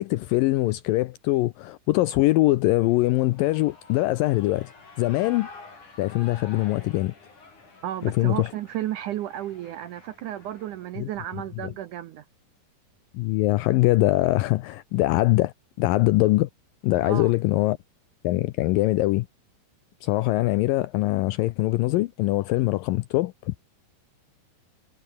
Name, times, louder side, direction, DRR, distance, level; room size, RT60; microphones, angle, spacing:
voice 1, 0.0-4.7 5.0-5.5 6.0-7.1 8.0-8.5 11.0-11.1 11.6-11.7 13.1-16.5 16.8-17.8 18.2-19.3 20.0-23.6, left 18 dB, 85° left, 2.0 m, -23 dB
Shout / Cheering, 3.2-10.9, left 4 dB, 50° left, 8.4 m, -48 dB
voice 2, 7.8-12.2 17.0-17.3, right 12 dB, 70° right, 1.9 m, -33 dB
omnidirectional pair, 4.6 m